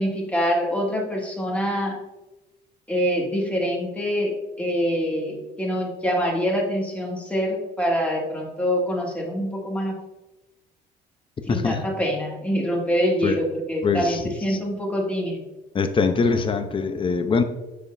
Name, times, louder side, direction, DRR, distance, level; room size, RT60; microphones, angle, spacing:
voice 1, 0.0-2.0 2.9-10.0 11.5-15.4, equal, 10° left, -2 dB, 1.9 m, -25 dB
voice 2, 11.5-11.8 13.2-13.4 13.8-14.6 15.7-17.4, left 4 dB, 30° left, 8 dB, 0.7 m, -23 dB
7.2 x 6.5 x 2.7 m, 1.0 s
cardioid pair, 110°, 17 cm